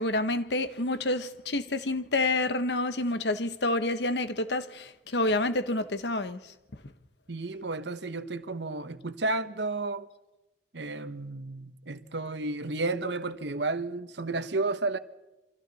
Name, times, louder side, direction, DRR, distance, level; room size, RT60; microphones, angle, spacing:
voice 1, 0.0-6.4, left 2 dB, 75° left, 1.1 m, -28 dB
voice 2, 7.3-10.1 10.7-15.0, right 3 dB, 80° right, 1.1 m, -32 dB
27.5 x 24.5 x 4.2 m
head